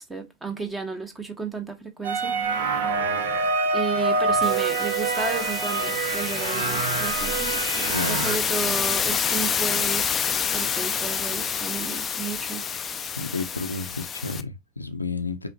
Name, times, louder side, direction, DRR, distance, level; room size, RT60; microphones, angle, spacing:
voice 1, 0.0-2.7 3.7-12.6, right 4 dB, 10° right, 1.0 m, -33 dB
sound 1, 2.0-8.4, right 4 dB, 60° right, 0.7 m, -25 dB
sound 2, 4.4-14.4, left 7 dB, 20° left, 0.4 m, -28 dB
voice 2, 7.9-8.3 13.2-15.5, left 3 dB, 85° left, 0.6 m, -31 dB
5.4 x 2.8 x 2.8 m
figure-of-eight pair, 90°, 0 cm